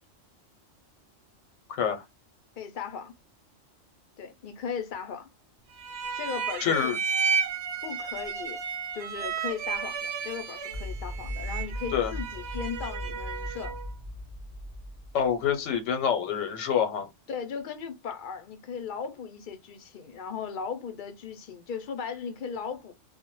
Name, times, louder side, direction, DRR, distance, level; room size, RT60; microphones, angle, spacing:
voice 1, 1.7-2.0 6.6-7.0 11.9-12.1 15.1-17.1, left 8 dB, 85° left, 0.9 m, -26 dB
voice 2, 2.6-3.1 4.2-5.3 6.2-6.9 7.8-8.6 8.9-13.8 17.3-22.9, left 6 dB, 60° left, 0.5 m, -37 dB
sound 1, 5.8-13.9, right 6 dB, 65° right, 0.8 m, -33 dB
sound 2, 10.7-15.5, left 1 dB, 40° right, 0.5 m, -38 dB
2.1 x 2.1 x 2.9 m
omnidirectional pair, 1.3 m